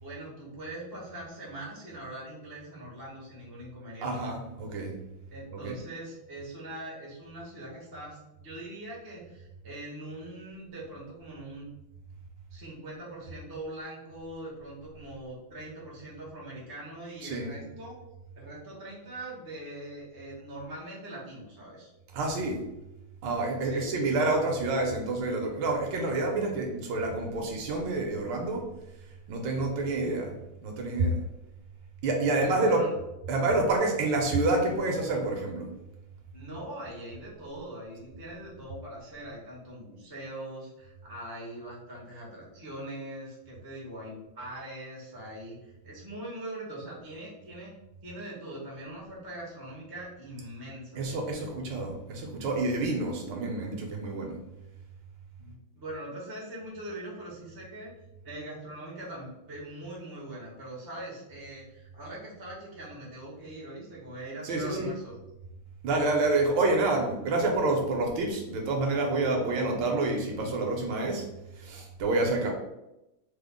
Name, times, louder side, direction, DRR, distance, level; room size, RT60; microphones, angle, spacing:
voice 1, 0.0-4.2 5.3-11.7 12.5-18.0 18.3-21.9 23.6-24.1 32.4-32.9 36.3-47.7 48.0-51.6 55.4-57.9 58.2-65.2, right 1 dB, 30° right, -4 dB, 0.4 m, -42 dB
voice 2, 4.0-5.0 5.5-5.7 17.2-17.5 22.1-22.6 23.2-28.7 29.3-30.4 30.6-31.2 32.0-32.8 33.3-35.7 51.0-54.4 64.4-64.9 65.8-71.3 71.5-72.5, right 2 dB, 75° right, 1 dB, 1.3 m, -28 dB
3.7 x 2.0 x 3.5 m, 0.91 s
omnidirectional pair, 2.2 m